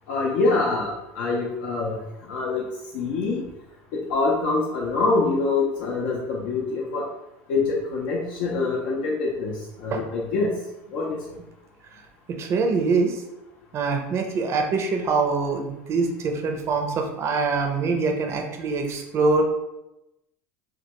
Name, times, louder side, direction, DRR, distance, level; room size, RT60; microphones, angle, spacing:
voice 1, 0.1-2.6 2.9-3.4 4.1-7.1 7.5-10.6 10.9-11.2, left 3 dB, 70° left, -4 dB, 0.4 m, -25 dB
voice 2, 12.3-13.2 13.7-19.4, right 4 dB, 40° right, 4 dB, 0.5 m, -24 dB
2.2 x 2.2 x 2.9 m, 0.94 s
supercardioid pair, 100°, 7 cm